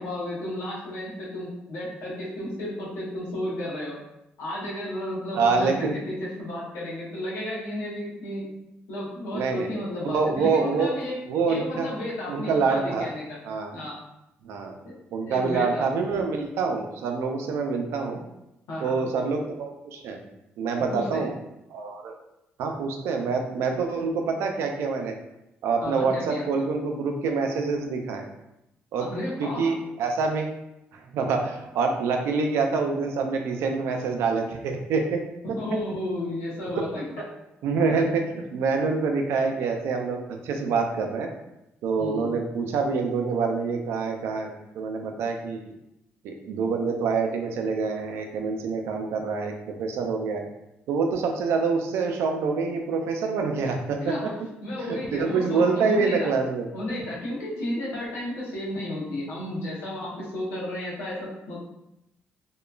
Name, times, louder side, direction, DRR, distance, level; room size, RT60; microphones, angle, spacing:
voice 1, 0.0-4.0 4.4-8.5 8.9-11.2 11.5-13.4 13.7-14.0 14.8-14.9 15.2-15.9 18.7-19.0 20.9-21.3 25.8-26.6 29.0-29.7 35.4-37.1 37.9-38.0 42.0-42.3 54.0-56.3 56.7-61.6, left 1 dB, 90° left, -5 dB, 0.9 m, -33 dB
voice 2, 5.3-5.9 9.3-9.7 10.0-10.9 11.3-11.9 12.3-13.1 13.5-13.7 14.4-14.7 15.1-18.2 18.8-20.2 20.6-21.3 21.7-22.1 22.6-25.1 25.6-28.2 28.9-29.1 29.4-30.5 30.9-35.2 35.5-35.6 36.8-36.9 37.6-41.3 41.8-45.6 46.2-50.4 50.9-54.1 54.8-56.7, right 4 dB, 85° right, 3 dB, 0.4 m, -26 dB
2.9 x 2.2 x 2.3 m, 0.87 s
cardioid pair, 95°, 4 cm